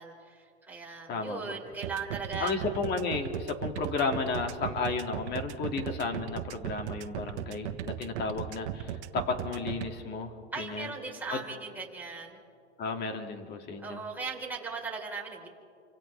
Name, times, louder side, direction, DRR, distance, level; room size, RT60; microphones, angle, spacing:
voice 1, 0.0-2.6 10.5-12.4 13.8-15.5, right 4 dB, 5° right, -3 dB, 4.1 m, -38 dB
voice 2, 1.1-1.6 2.4-10.9 11.3-11.4 12.8-14.0, left 4 dB, 30° left, 4 dB, 2.3 m, -33 dB
sound 1, 1.8-9.9, right 11 dB, 70° right, 1.3 m, -36 dB
30.0 x 25.5 x 3.4 m, 2.3 s
hypercardioid pair, 135°, 35 cm